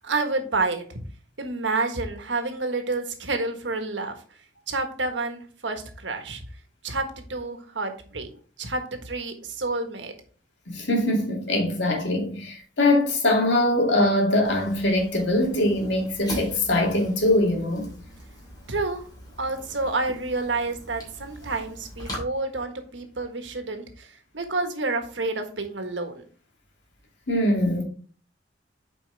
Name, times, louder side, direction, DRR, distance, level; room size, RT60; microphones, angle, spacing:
voice 1, 0.0-1.0 1.4-4.1 4.7-6.4 6.8-8.3 8.6-10.1 18.7-19.0 19.4-26.2, right 3 dB, 90° right, 1.5 m, -29 dB
voice 2, 10.7-17.9 27.3-27.8, left 1 dB, 70° left, 2.5 m, -22 dB
Fire, 14.4-22.2, equal, 20° left, 3.6 m, -41 dB
8.4 x 5.1 x 3.4 m
head